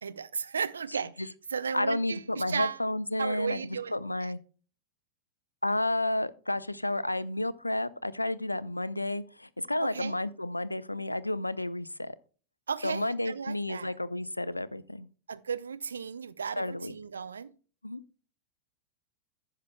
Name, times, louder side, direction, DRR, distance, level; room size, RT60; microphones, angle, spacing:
voice 1, 0.0-2.8 3.2-3.9 4.2-4.3 9.8-10.1 12.7-13.9 15.3-17.5, right 6 dB, 70° right, 0.5 m, -35 dB
voice 2, 1.7-3.6 3.9-4.4 5.6-12.2 12.8-15.1 16.6-16.9 17.8-18.0, left 1 dB, 85° left, 0.5 m, -31 dB
15.0 x 6.7 x 2.2 m
figure-of-eight pair, 90°, 0 cm